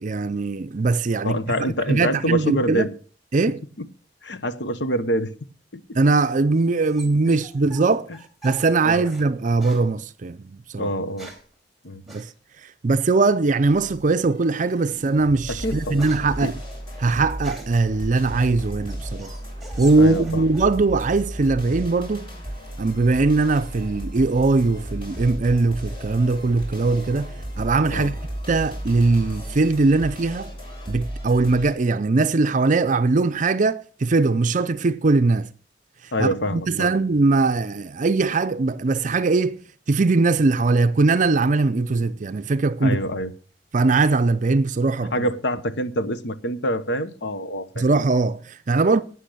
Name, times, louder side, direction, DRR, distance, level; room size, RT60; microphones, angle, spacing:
voice 1, 0.0-1.4 1.9-2.9 3.3-3.6 5.9-8.1 8.4-10.9 12.1-16.6 17.0-19.3 19.8-22.3 22.8-28.1 28.5-30.5 30.9-35.5 36.0-39.6 39.9-43.0 43.7-45.3 47.8-49.0, right 3 dB, 45° right, 0.5 m, -21 dB
voice 2, 1.2-2.9 3.8-3.9 4.2-5.3 5.7-6.0 8.8-9.1 10.8-11.3 11.8-12.0 15.5-16.0 16.4-16.5 20.0-20.5 27.9-28.1 36.1-36.9 42.8-43.3 45.1-47.8, equal, 70° left, 1.0 m, -26 dB
sound 1, 6.6-9.3 9.6-9.9 10.8-11.5 12.1-12.3 13.8-14.2 14.7-14.9 15.3-17.9 18.4-20.8 21.0-21.6, right 2 dB, ahead, 3.1 m, -44 dB
sound 2, 13.6-31.7, equal, 30° left, 6.9 m, -34 dB
11.5 x 9.2 x 6.7 m
head